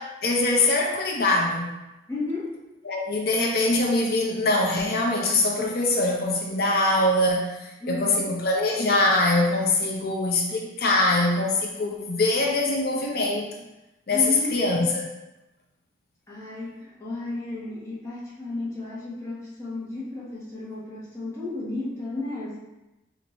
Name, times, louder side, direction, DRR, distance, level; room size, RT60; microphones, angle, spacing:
voice 1, 0.0-1.7 2.9-7.6 7.9-13.5 14.1-15.1, left 2 dB, 55° left, 0 dB, 0.5 m, -23 dB
voice 2, 2.1-2.5 7.8-8.3 14.1-14.6 16.3-22.6, left 2 dB, 15° left, -8 dB, 1.0 m, -33 dB
4.3 x 2.6 x 3.0 m, 0.97 s
head